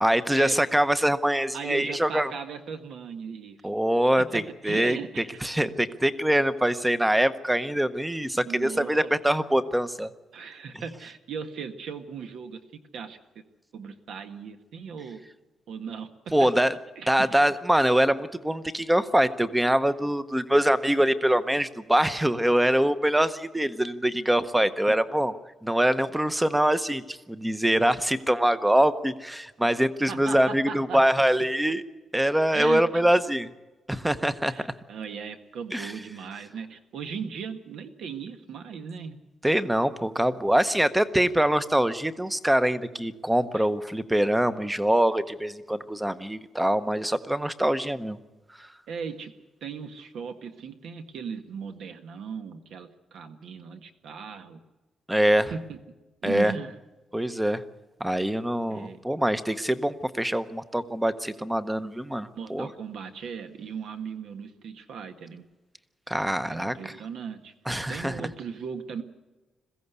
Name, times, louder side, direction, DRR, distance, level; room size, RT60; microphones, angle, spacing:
voice 1, 0.0-2.3 3.6-10.1 16.3-16.7 17.1-25.4 25.6-31.8 32.1-33.5 33.9-34.5 35.7-35.9 39.4-48.2 48.6-48.7 55.1-55.5 56.2-56.5 57.1-57.6 58.0-62.7 66.1-67.0 67.7-68.2, right 1 dB, 5° right, 13 dB, 0.7 m, -24 dB
voice 2, 1.5-3.7 4.2-5.2 5.6-5.7 8.4-9.1 10.3-12.6 12.9-13.2 13.7-15.2 15.7-16.1 16.4-16.5 17.0-17.3 24.9-25.0 30.1-31.0 32.5-33.0 34.5-39.2 43.5-43.7 48.9-49.3 49.6-54.6 55.5-55.8 56.2-56.7 58.7-59.0 62.3-65.4 66.1-67.5 67.9-69.0, right 6 dB, 70° right, 7 dB, 1.6 m, -37 dB
21.5 x 15.5 x 8.1 m, 1.1 s
wide cardioid pair, 165°, 0 cm